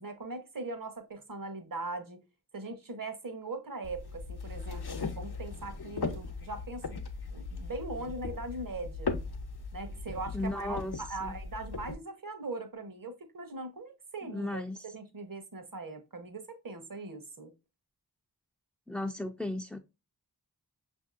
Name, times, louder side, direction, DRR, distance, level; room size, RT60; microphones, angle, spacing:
voice 1, 0.0-2.2 2.5-7.0 7.3-9.2 9.7-14.6 14.9-17.5, right 2 dB, 60° right, 0.9 m, -40 dB
sound 1, 3.8-11.9, left 4 dB, 75° left, 0.7 m, -38 dB
voice 2, 10.3-11.3 14.2-14.8 18.9-19.8, left 2 dB, ahead, 0.3 m, -36 dB
5.8 x 2.7 x 2.4 m
wide cardioid pair, 40°, 39 cm